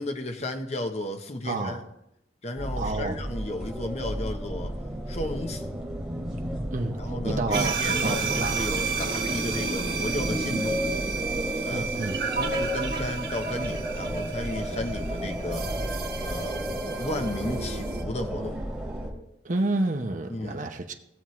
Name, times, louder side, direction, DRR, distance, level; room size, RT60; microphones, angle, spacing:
voice 1, 0.0-1.8 2.4-4.8 5.1-5.7 7.0-10.9 11.6-11.9 12.4-15.8 16.2-16.6 17.0-18.6 20.3-20.6, left 1 dB, 40° left, 0.9 m, -34 dB
voice 2, 1.4-1.9 2.8-3.2 6.7-7.0 7.2-8.6 11.7-12.2 19.4-20.9, right 2 dB, 45° right, 0.9 m, -29 dB
sound 1, 2.6-19.1, equal, ahead, 2.7 m, -32 dB
sound 2, 7.5-18.0, right 5 dB, 60° right, 1.4 m, -32 dB
18.0 x 7.3 x 3.1 m
head